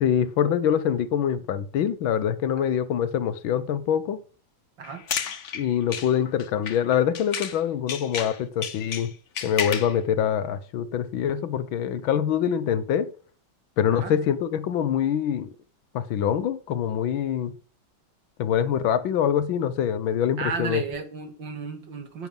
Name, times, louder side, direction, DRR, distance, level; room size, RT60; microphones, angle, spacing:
voice 1, 0.0-4.2 5.5-9.1 9.4-13.1 13.8-15.5 15.9-17.5 18.4-20.8, left 9 dB, 75° left, 1.6 m, -24 dB
sound 1, 4.8-7.6 7.9-10.0, left 7 dB, 45° left, 1.0 m, -32 dB
voice 2, 20.4-22.3, right 5 dB, 65° right, 2.6 m, -33 dB
10.5 x 9.3 x 5.3 m
omnidirectional pair, 2.3 m